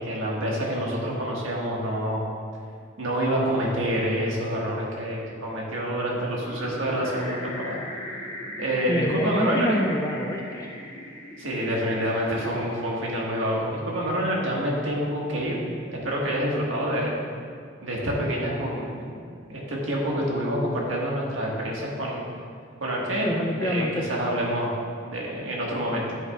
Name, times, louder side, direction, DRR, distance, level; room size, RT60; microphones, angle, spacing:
voice 1, 0.0-2.2 3.0-7.8 8.6-9.8 11.4-15.6 15.9-17.1 17.8-19.2 19.5-22.2 22.8-24.7 25.0-26.2, equal, 80° right, -3 dB, 1.6 m, -27 dB
sound 1, 6.4-16.3, left 1 dB, 30° left, 1.1 m, -40 dB
voice 2, 8.9-10.8 23.2-24.1, left 1 dB, 15° left, 1 dB, 0.4 m, -27 dB
9.4 x 8.3 x 2.4 m, 2.2 s
head